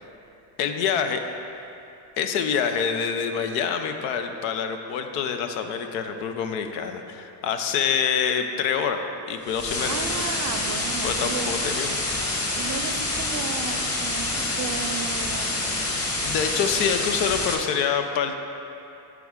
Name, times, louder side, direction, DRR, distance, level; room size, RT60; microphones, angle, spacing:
voice 1, 0.6-1.2 2.2-10.0 11.0-12.0 16.2-18.4, left 7 dB, 90° left, 6 dB, 0.6 m, -26 dB
sound 1, 9.5-17.5, left 2 dB, 30° left, 1.3 m, -27 dB
voice 2, 9.8-11.5 12.6-15.7, right 6 dB, 40° right, 7 dB, 0.5 m, -34 dB
10.5 x 3.5 x 3.7 m, 2.8 s
supercardioid pair, 65°, 45 cm